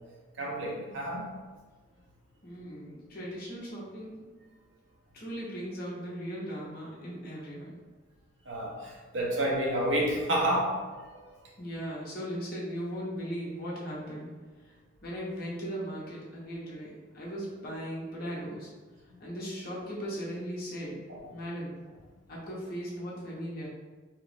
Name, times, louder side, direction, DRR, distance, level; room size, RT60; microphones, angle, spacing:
voice 1, 0.4-1.3 8.5-11.2 21.1-21.2, right 1 dB, 70° right, -2 dB, 0.8 m, -30 dB
voice 2, 2.4-4.1 5.1-7.8 11.6-14.3 15.0-18.7 19.2-21.0 21.3-21.7 22.3-23.7, equal, 50° left, -5 dB, 0.9 m, -38 dB
2.9 x 2.5 x 3.3 m, 1.4 s
head